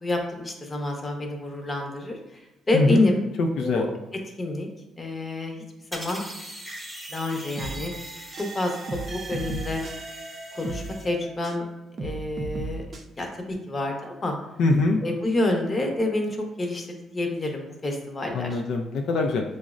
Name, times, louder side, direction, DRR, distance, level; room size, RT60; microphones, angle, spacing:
voice 1, 0.0-3.2 3.6-3.9 4.4-4.7 5.0-5.6 5.9-6.2 7.1-7.9 8.4-9.8 10.5-11.7 12.0-12.9 13.2-14.3 15.0-18.6, left 1 dB, 30° left, 2 dB, 0.7 m, -28 dB
voice 2, 2.7-3.1 3.4-3.9 14.6-15.0 18.3-19.4, left 3 dB, 75° left, 3 dB, 0.3 m, -23 dB
sound 1, 5.9-11.1, equal, 5° right, 0.7 m, -41 dB
sound 2, 7.6-11.7 12.0-13.0, right 3 dB, 45° right, 0.5 m, -36 dB
6.0 x 2.0 x 2.4 m, 0.98 s
cardioid pair, 90°, 0 cm